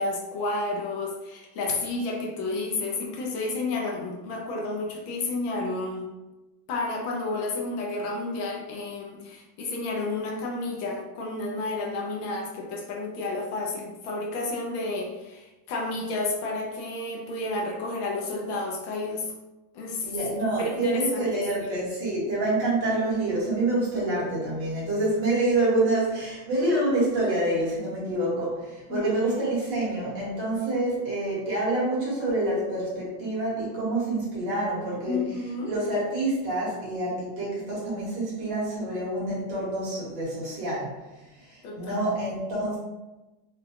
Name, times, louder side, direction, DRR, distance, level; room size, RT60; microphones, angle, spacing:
voice 1, 0.0-6.1 6.7-19.3 19.7-20.2 20.6-21.8 28.9-29.3 35.1-35.7 41.6-42.0, left 2 dB, 75° left, 0 dB, 1.4 m, -31 dB
voice 2, 20.0-35.2 35.7-40.9 41.5-42.8, right 2 dB, 65° right, -7 dB, 2.1 m, -27 dB
5.1 x 2.2 x 2.8 m, 1.1 s
omnidirectional pair, 2.2 m